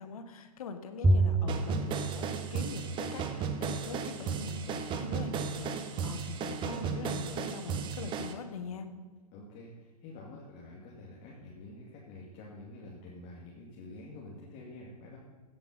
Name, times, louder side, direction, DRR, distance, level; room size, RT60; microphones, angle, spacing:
voice 1, 0.0-8.9, left 6 dB, 60° left, 8 dB, 1.4 m, -43 dB
Bowed string instrument, 1.0-3.6, right 2 dB, 5° right, 0.6 m, -29 dB
sound 1, 1.5-8.3, right 6 dB, 25° right, 1.0 m, -35 dB
voice 2, 9.3-15.2, left 2 dB, 35° left, -4 dB, 2.4 m, -48 dB
15.5 x 7.0 x 5.5 m, 1.4 s
hypercardioid pair, 120°, 20 cm